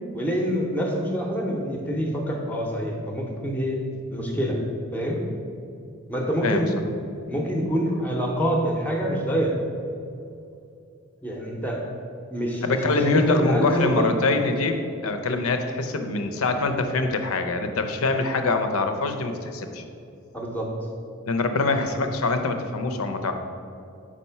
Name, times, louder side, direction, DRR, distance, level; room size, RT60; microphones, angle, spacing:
voice 1, 0.1-3.8 4.1-4.6 4.9-5.2 6.1-6.7 7.3-9.6 11.2-11.8 12.3-14.1 20.3-20.7 21.6-21.7, equal, 10° left, -1 dB, 0.6 m, -26 dB
voice 2, 12.6-14.8 15.0-19.8 21.3-23.3, left 3 dB, 85° left, 7 dB, 0.6 m, -24 dB
5.1 x 4.2 x 5.6 m, 2.6 s
head